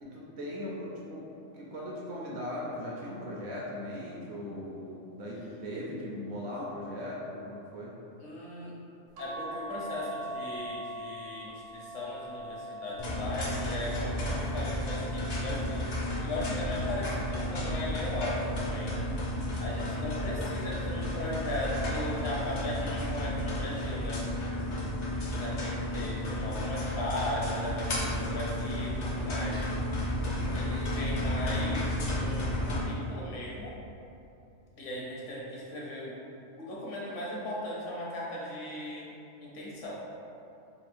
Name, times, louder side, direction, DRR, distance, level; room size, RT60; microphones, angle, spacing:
voice 1, 0.0-1.3 1.5-8.0 29.2-29.5, left 1 dB, 60° right, -4 dB, 0.9 m, -39 dB
voice 2, 8.2-8.7 9.2-19.0 19.6-24.3 25.2-29.6 30.5-33.7 34.8-36.2 36.6-39.1 39.4-39.9, left 1 dB, 70° left, -5 dB, 1.1 m, -37 dB
sound 1, 9.2-15.8 16.4-17.8 19.1-19.5 19.8-19.9, right 1 dB, 80° right, 1.0 m, -43 dB
sound 2, 13.0-32.8, left 1 dB, 50° left, 0.5 m, -32 dB
3.5 x 2.3 x 4.2 m, 2.7 s
omnidirectional pair, 1.4 m